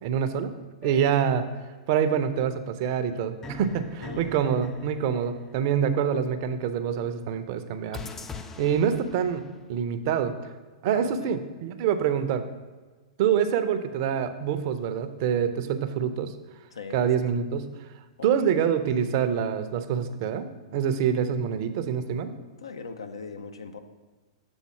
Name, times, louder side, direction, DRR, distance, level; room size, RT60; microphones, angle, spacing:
voice 1, 0.0-0.5 0.8-1.5 1.9-8.0 8.6-10.3 10.8-12.4 13.2-16.3 16.9-17.7 18.2-22.3, right 8 dB, 45° right, 10 dB, 0.5 m, -26 dB
sound 1, 0.8-1.9 3.4-6.1 7.9-9.7, left 4 dB, 15° left, 0.4 m, -43 dB
voice 2, 4.0-4.3 10.9-11.3 16.7-17.1 18.2-18.3 22.6-23.8, left 4 dB, 70° left, 8 dB, 0.5 m, -39 dB
7.1 x 4.0 x 5.8 m, 1.3 s
figure-of-eight pair, 105°, 3 cm